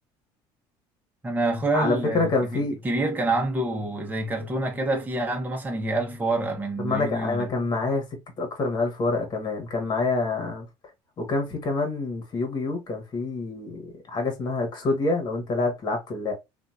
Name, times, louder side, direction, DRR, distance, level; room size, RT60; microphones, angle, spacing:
voice 1, 1.2-7.5, right 2 dB, 15° right, 1.1 m, -27 dB
voice 2, 1.7-2.8 6.8-8.0 8.4-10.7 11.2-16.3, left 3 dB, 40° left, 1.3 m, -27 dB
2.8 x 2.5 x 2.4 m
cardioid pair, 110°, 11 cm